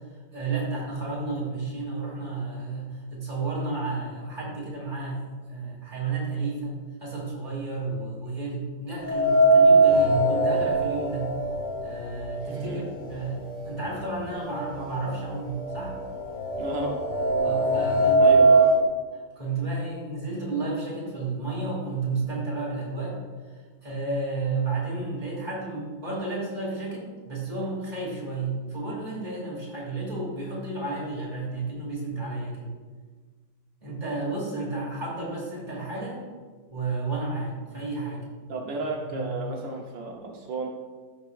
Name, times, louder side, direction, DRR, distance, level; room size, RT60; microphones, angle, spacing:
voice 1, 0.1-11.3 11.8-16.0 17.4-18.4 19.1-23.2 23.5-32.7 33.8-36.2 36.7-38.2 39.1-39.3, right 3 dB, 20° right, -6 dB, 2.7 m, -32 dB
sound 1, 9.0-13.1 13.4-13.5 14.5-14.6 15.0-18.8, right 2 dB, 50° left, 1.1 m, -21 dB
voice 2, 12.4-12.8 16.6-17.0 18.2-18.7 38.5-40.7, right 3 dB, 75° right, -1 dB, 1.6 m, -32 dB
15.5 x 5.3 x 2.4 m, 1.5 s
omnidirectional pair, 2.0 m